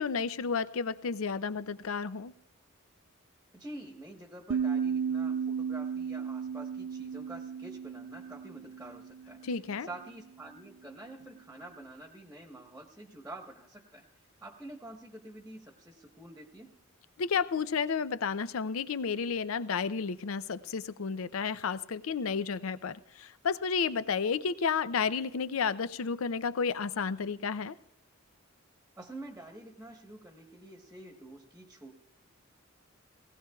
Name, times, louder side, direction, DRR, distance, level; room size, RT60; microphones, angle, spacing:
voice 1, 0.0-2.3 9.4-9.9 17.2-27.8, left 5 dB, 85° left, 0.5 m, -32 dB
voice 2, 3.5-9.4 9.8-14.1 14.4-16.8 29.0-31.9, right 1 dB, 5° right, 1.1 m, -47 dB
sound 1, 4.5-9.6, right 7 dB, 65° right, 0.4 m, -34 dB
19.0 x 16.5 x 2.3 m
head